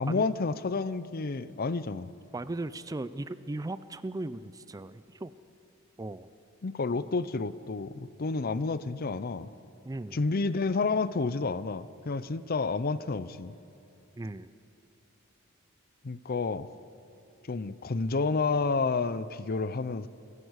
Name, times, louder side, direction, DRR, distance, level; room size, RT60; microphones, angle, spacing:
voice 1, 0.0-2.1 6.6-9.5 10.1-13.5 16.0-16.7 17.5-20.1, left 4 dB, 45° left, 15 dB, 0.6 m, -30 dB
voice 2, 2.3-5.3 6.0-6.3 9.8-10.2 14.2-14.5, right 2 dB, 15° right, 15 dB, 0.4 m, -37 dB
29.0 x 11.0 x 8.1 m, 2.8 s
head